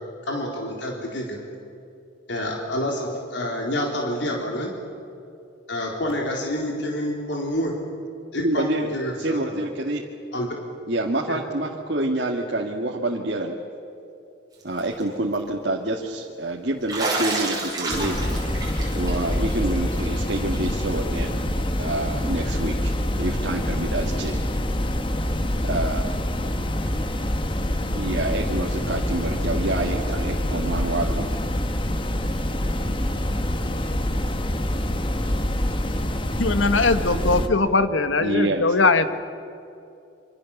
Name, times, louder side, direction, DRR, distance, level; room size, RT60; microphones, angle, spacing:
voice 1, 0.3-1.4 2.3-4.7 5.7-7.7 8.3-9.7 10.3-10.5 11.3-11.4, equal, 70° left, 0 dB, 3.9 m, -28 dB
voice 2, 8.4-8.9 9.2-10.0 10.9-13.6 14.6-18.3 18.9-21.4 21.8-24.4 25.6-26.0 28.0-31.3 38.2-38.7, right 1 dB, 60° right, -2 dB, 1.9 m, -27 dB
Bathtub (filling or washing), 14.6-15.0 15.3-15.4 16.9-20.2 20.5-20.7 21.0-21.1 22.5-22.6 24.3-24.4, right 2 dB, 20° right, 6.1 m, -30 dB
sound 1, 17.9-37.5, left 1 dB, 25° left, 1.3 m, -26 dB
voice 3, 36.4-39.1, left 3 dB, 85° left, 10 dB, 1.5 m, -20 dB
27.0 x 26.0 x 7.2 m, 2.7 s
head